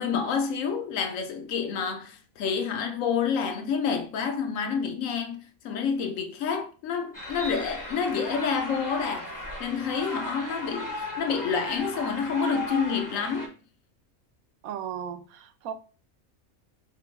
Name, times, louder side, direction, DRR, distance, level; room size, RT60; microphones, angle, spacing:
voice 1, 0.0-9.3 9.6-13.5, left 6 dB, 70° left, 1.0 m, -28 dB
sound 1, 7.1-13.5, left 1 dB, 20° left, 0.7 m, -36 dB
voice 2, 14.6-15.7, right 8 dB, 85° right, 1.0 m, -36 dB
3.8 x 3.0 x 3.4 m
omnidirectional pair, 1.5 m